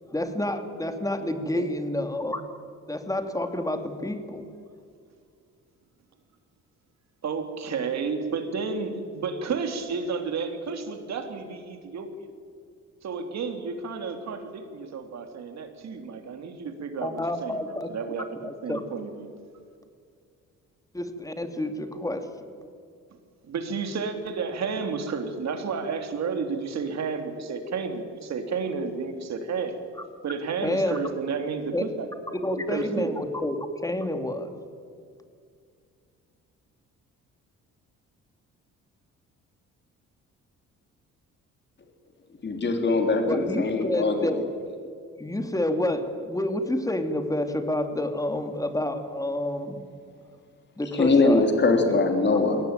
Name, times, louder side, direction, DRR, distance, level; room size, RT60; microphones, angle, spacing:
voice 1, 0.1-2.4 2.9-4.5 17.0-17.9 18.4-18.8 20.9-22.5 30.6-31.0 31.7-31.8 32.3-33.6 33.8-34.5 43.3-44.4 45.2-49.8 50.8-51.5 51.9-52.0, left 1 dB, 10° left, 7 dB, 2.6 m, -29 dB
voice 2, 7.2-12.3 13.0-19.3 23.4-29.8 30.2-32.4 32.7-33.1, right 5 dB, 60° right, 6 dB, 3.3 m, -32 dB
voice 3, 42.4-44.3 51.0-52.6, left 3 dB, 35° left, 4 dB, 3.5 m, -22 dB
22.0 x 17.5 x 9.1 m, 2.3 s
cardioid pair, 90°, 30 cm